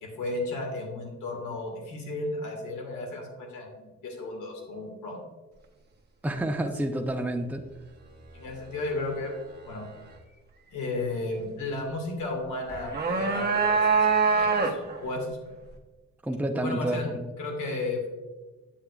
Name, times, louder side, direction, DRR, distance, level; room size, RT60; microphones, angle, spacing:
voice 1, 0.0-5.2 8.3-9.3 9.7-9.9 10.7-15.6 16.6-17.1 17.4-18.1, left 2 dB, 75° left, 1 dB, 2.1 m, -34 dB
voice 2, 6.2-7.6 16.2-17.3, right 1 dB, 5° right, 4 dB, 0.6 m, -29 dB
sound 1, 12.7-15.0, right 5 dB, 35° right, 1.2 m, -24 dB
8.6 x 7.7 x 2.4 m, 1.2 s
cardioid pair, 90°, 30 cm